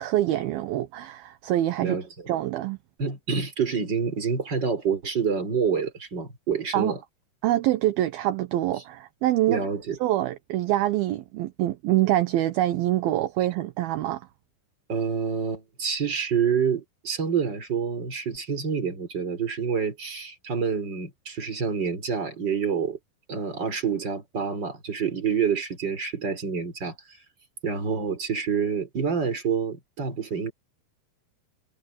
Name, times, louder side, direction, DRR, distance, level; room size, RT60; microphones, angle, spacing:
voice 1, 0.0-2.0 2.3-2.8 6.7-6.9 7.4-9.6 10.0-14.2, right 14 dB, 70° right, 2.6 m, -25 dB
voice 2, 3.0-7.0 9.5-10.0 14.9-23.0 23.3-27.0 27.6-30.5, right 6 dB, 25° right, 4.7 m, -27 dB
omnidirectional pair, 4.8 m